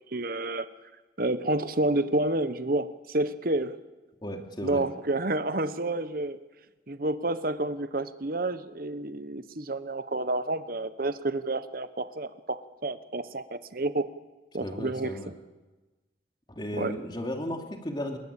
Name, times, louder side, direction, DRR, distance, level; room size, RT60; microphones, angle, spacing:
voice 1, 0.1-0.7 1.2-3.8 4.6-6.4 6.9-14.1 14.5-15.3 16.8-17.0, right 2 dB, 50° right, 12 dB, 1.1 m, -29 dB
voice 2, 4.2-4.8 14.6-15.3 16.5-18.2, equal, 25° left, 3 dB, 2.8 m, -34 dB
27.0 x 21.0 x 8.4 m, 1.2 s
head